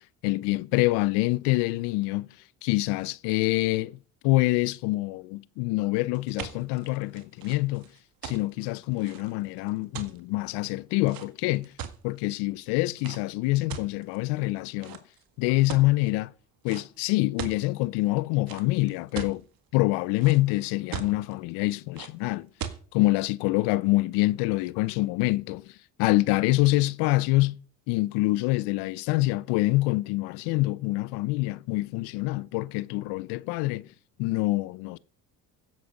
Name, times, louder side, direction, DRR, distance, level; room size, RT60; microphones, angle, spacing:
voice 1, 0.2-2.3 2.6-4.0 4.2-7.9 8.2-11.7 12.0-15.0 15.4-16.3 16.6-19.4 19.7-22.5 22.9-25.7 26.0-27.6 27.9-33.9 34.2-35.0, left 20 dB, 80° left, 0.7 m, -26 dB
sound 1, 6.1-12.3 12.9-13.2 13.7-14.4 14.8-15.2 15.7-16.1 16.7-16.8 17.1-17.6 18.5-19.4 19.9-20.5 20.9-21.3 22.0-22.1 22.6-22.8, right 9 dB, 60° right, 1.8 m, -39 dB
15.5 x 7.9 x 5.2 m
supercardioid pair, 75°, 40 cm